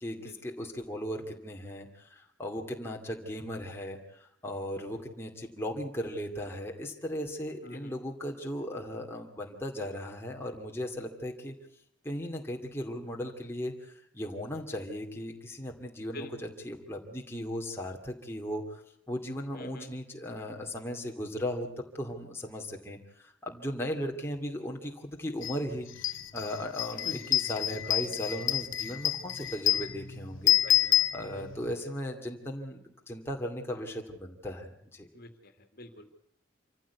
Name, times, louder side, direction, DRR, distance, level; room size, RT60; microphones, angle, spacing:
voice 1, 0.0-11.5 12.0-18.8 19.1-30.5 31.1-32.8 33.1-35.1, equal, 10° left, 0 dB, 2.4 m, -37 dB
voice 2, 19.5-19.9 27.0-27.2 27.8-27.9 30.6-31.0 31.4-31.5 35.1-35.3 35.7-36.2, left 1 dB, 50° left, 7 dB, 2.4 m, -45 dB
sound 1, 25.4-25.6 25.9-31.7, left 12 dB, 75° left, 1.2 m, -28 dB
26.5 x 15.0 x 8.3 m, 0.68 s
head